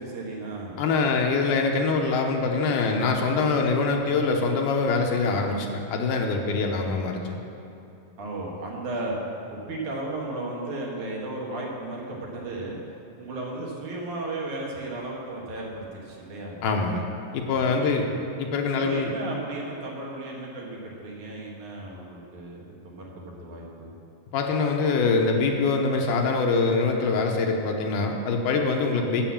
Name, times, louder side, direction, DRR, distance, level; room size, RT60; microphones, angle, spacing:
voice 1, 0.0-0.8 8.2-9.1 9.5-12.8 13.2-16.6 17.6-18.3 18.7-23.9, right 2 dB, 65° right, -3 dB, 3.0 m, -35 dB
voice 2, 0.8-7.4 16.6-17.0 17.3-18.1 18.4-19.1 24.3-29.3, left 4 dB, 80° left, 2 dB, 2.4 m, -24 dB
9.0 x 7.9 x 7.2 m, 2.8 s
omnidirectional pair, 3.8 m